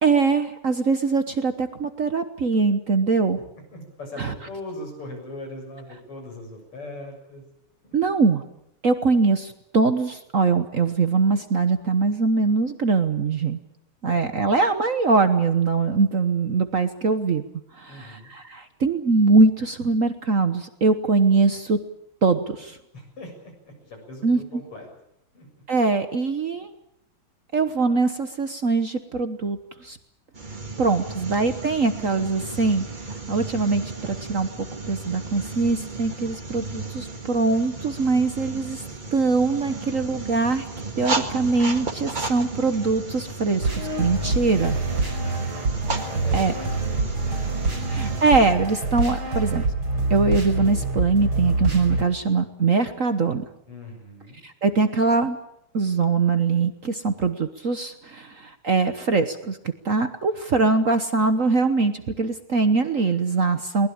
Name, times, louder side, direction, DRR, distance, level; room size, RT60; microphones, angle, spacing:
voice 1, 0.0-3.4 4.2-4.3 7.9-8.4 8.8-13.6 14.0-17.4 17.7-21.8 22.2-22.8 24.2-24.4 25.7-26.7 27.5-30.0 30.8-32.8 33.3-38.8 39.1-40.7 41.0-44.8 46.3-46.5 47.9-49.7 50.1-53.4 54.4-55.4 55.7-59.6 59.8-63.9, right 4 dB, 45° right, 9 dB, 1.2 m, -22 dB
voice 2, 3.7-7.4 7.8-8.0 14.1-14.3 17.9-18.3 22.9-24.9 25.3-25.5 31.0-31.4 44.4-48.0 53.7-54.4, left 1 dB, 85° left, 3 dB, 7.9 m, -41 dB
sound 1, 30.3-48.5, right 3 dB, 20° right, 1.9 m, -34 dB
sound 2, 43.6-52.0, right 2 dB, 70° right, 5.5 m, -26 dB
22.0 x 20.0 x 8.8 m, 0.80 s
omnidirectional pair, 2.4 m